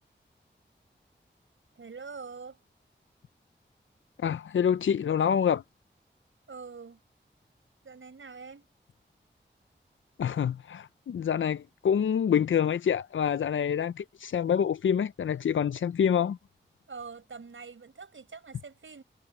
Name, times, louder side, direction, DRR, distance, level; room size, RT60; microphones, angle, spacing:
voice 1, 1.8-2.6 6.5-7.0 7.8-8.7 16.9-19.0, right 5 dB, 90° right, 5.5 m, -44 dB
voice 2, 4.2-5.6 10.2-16.4, left 8 dB, 80° left, 0.4 m, -26 dB
cardioid pair, 45°, 20 cm